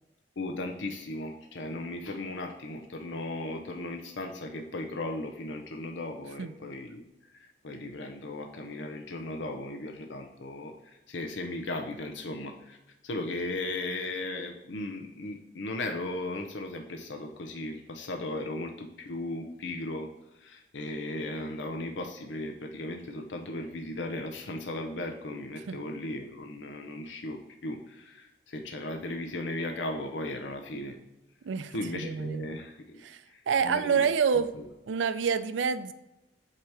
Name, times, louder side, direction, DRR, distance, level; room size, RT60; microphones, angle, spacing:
voice 1, 0.4-12.8 13.0-31.0 31.7-34.1 34.5-34.7, left 2 dB, 80° left, 4 dB, 0.6 m, -37 dB
voice 2, 31.4-32.5 33.0-33.2 33.5-34.5 34.9-35.9, right 6 dB, 85° right, 13 dB, 0.4 m, -27 dB
7.7 x 2.9 x 4.7 m, 0.97 s
head